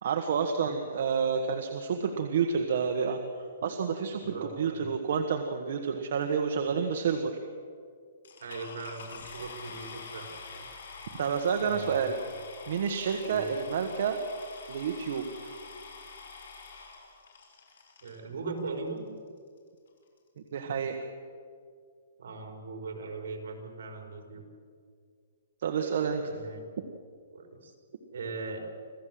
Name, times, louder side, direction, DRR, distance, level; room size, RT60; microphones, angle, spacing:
voice 1, 0.0-7.4 11.1-12.1 12.7-14.2 14.7-15.5 20.5-21.0 25.6-26.2, right 6 dB, 50° right, 4 dB, 1.6 m, -29 dB
voice 2, 4.2-4.9 8.4-10.7 11.6-12.1 13.2-13.5 18.0-19.0 22.2-24.4 26.2-26.6 27.3-27.7 28.1-28.7, right 3 dB, 70° right, 3 dB, 5.1 m, -39 dB
sound 1, 8.2-18.2 19.0-19.1 19.6-19.7 19.9-20.2, left 4 dB, 75° left, 5.9 m, -46 dB
26.5 x 16.0 x 7.8 m, 2.1 s
hypercardioid pair, 170°, 0 cm